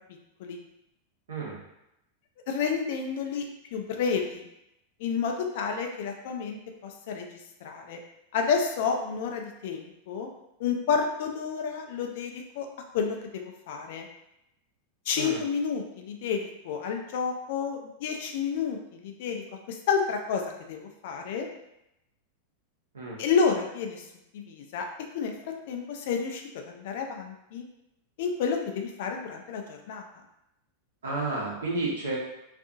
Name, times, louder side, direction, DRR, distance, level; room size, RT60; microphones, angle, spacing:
voice 1, 2.5-3.5 3.7-4.5 5.0-8.0 8.3-10.3 10.6-12.7 12.9-14.1 15.1-21.5 23.2-24.1 24.3-24.9 25.1-27.7 28.2-30.0, left 6 dB, 50° left, 3 dB, 0.4 m, -30 dB
voice 2, 31.0-32.2, right 2 dB, 65° right, -4 dB, 0.8 m, -31 dB
2.6 x 2.5 x 2.5 m, 0.86 s
figure-of-eight pair, 90°, 0 cm